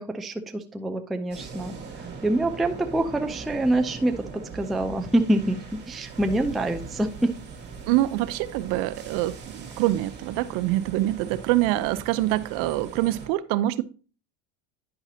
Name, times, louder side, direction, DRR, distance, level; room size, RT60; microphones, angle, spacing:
voice 1, 0.0-1.7 2.2-5.6 5.9-7.3, right 1 dB, ahead, 0.4 m, -25 dB
sound 1, 1.3-13.3, right 5 dB, 25° right, 2.3 m, -40 dB
voice 2, 7.9-13.8, right 15 dB, 60° right, 0.6 m, -25 dB
9.7 x 5.8 x 2.7 m
supercardioid pair, 130°, 38 cm